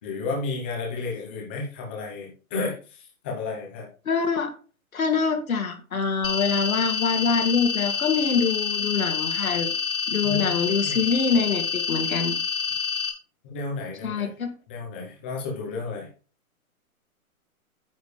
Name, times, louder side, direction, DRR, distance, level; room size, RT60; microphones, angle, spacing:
voice 1, 0.0-3.9 10.2-11.1 13.4-14.3 14.7-16.1, left 3 dB, 10° left, -1 dB, 0.8 m, -32 dB
voice 2, 4.1-4.5 4.9-9.7 10.1-12.4 14.0-14.5, left 5 dB, 70° left, 4 dB, 2.0 m, -25 dB
sound 1, 6.2-13.1, left 7 dB, 35° left, 1.9 m, -27 dB
9.6 x 7.3 x 3.3 m, 0.36 s
hypercardioid pair, 175°, 44 cm